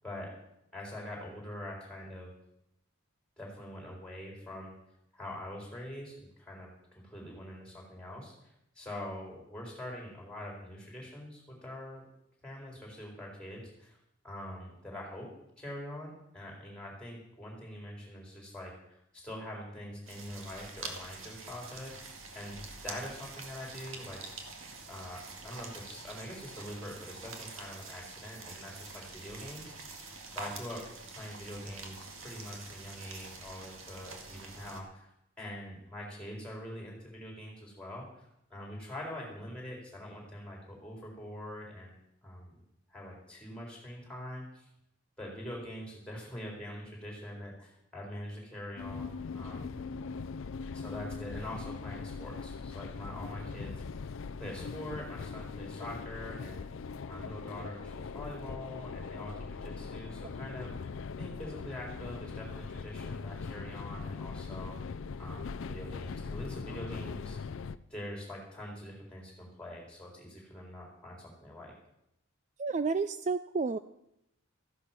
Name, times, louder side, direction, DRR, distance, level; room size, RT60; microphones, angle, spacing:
voice 1, 0.7-2.3 3.4-4.7 5.1-8.3 8.7-12.0 12.4-14.0 14.2-15.3 15.6-22.6 22.8-24.2 24.9-29.9 30.3-30.8 31.1-35.1 35.4-42.0 42.2-42.5 42.9-44.6 45.2-49.7 50.7-54.1 54.4-56.7 57.1-64.8 65.2-67.4 67.9-71.7, left 1 dB, 5° left, -2 dB, 4.3 m, -44 dB
sound 1, 20.1-34.8, right 3 dB, 65° right, 1.9 m, -46 dB
sound 2, 48.8-67.8, left 5 dB, 60° left, 0.5 m, -41 dB
voice 2, 72.6-73.8, right 4 dB, 35° right, 12 dB, 0.4 m, -30 dB
14.0 x 9.8 x 6.0 m, 0.81 s
head